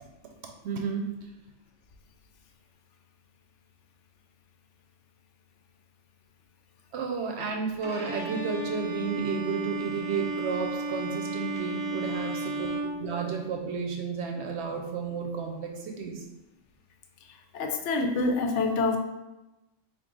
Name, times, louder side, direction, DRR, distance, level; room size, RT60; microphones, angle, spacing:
voice 1, 0.6-1.2 6.9-16.2, right 5 dB, 65° right, 2 dB, 0.8 m, -32 dB
Bowed string instrument, 7.8-13.7, right 2 dB, 35° right, 0.4 m, -34 dB
voice 2, 17.5-19.0, left 3 dB, 70° left, 4 dB, 0.9 m, -26 dB
3.8 x 2.6 x 3.7 m, 0.98 s
omnidirectional pair, 1.3 m